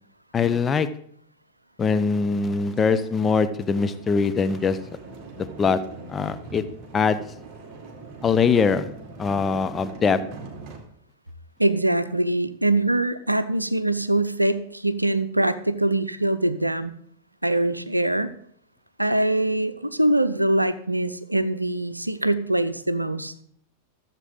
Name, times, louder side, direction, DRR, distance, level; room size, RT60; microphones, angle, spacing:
voice 1, 0.3-0.9 1.8-4.8 5.4-5.8 6.1-6.6 6.9-7.2 8.2-8.9 9.2-10.2, left 5 dB, 20° left, 11 dB, 0.6 m, -22 dB
sound 1, 2.4-10.8, right 3 dB, 30° right, 2.2 m, -42 dB
voice 2, 11.6-16.9 17.4-18.3 19.0-23.4, right 1 dB, 85° right, 14 dB, 0.5 m, -23 dB
14.0 x 7.4 x 3.9 m, 0.64 s
figure-of-eight pair, 90°, 0 cm